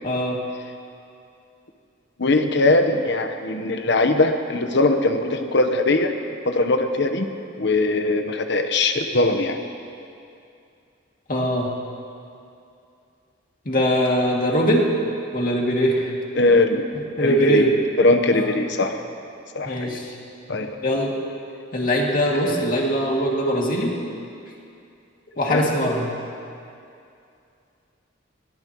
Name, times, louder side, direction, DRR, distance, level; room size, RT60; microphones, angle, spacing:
voice 1, 0.0-0.4 11.3-11.7 13.7-14.9 15.3-16.1 17.2-17.7 18.3-18.5 19.6-20.1 20.8-21.1 21.7-23.9 25.4-26.1, equal, 45° left, -2 dB, 2.4 m, -21 dB
voice 2, 2.2-6.1 6.4-7.3 7.6-9.6 16.4-16.8 17.2-17.6 18.0-19.0 19.5-20.0 20.5-20.7 22.4-22.5 25.5-25.6, left 2 dB, 65° left, 6 dB, 1.1 m, -20 dB
21.5 x 18.5 x 3.1 m, 2.5 s
head